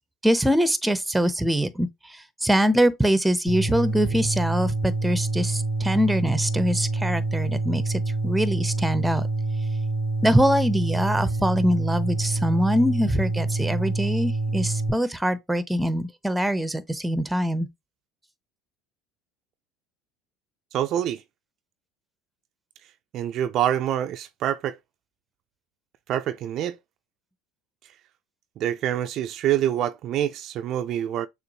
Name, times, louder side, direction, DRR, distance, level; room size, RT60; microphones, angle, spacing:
voice 1, 0.2-9.3 10.2-17.7, equal, 5° right, 0.7 m, -23 dB
sound 1, 3.5-14.9, right 2 dB, 80° left, 1.2 m, -27 dB
voice 2, 20.7-21.2 23.1-24.8 26.1-26.8 28.6-31.3, right 11 dB, 55° right, 0.4 m, -26 dB
6.7 x 2.5 x 2.8 m
hypercardioid pair, 75°, 0 cm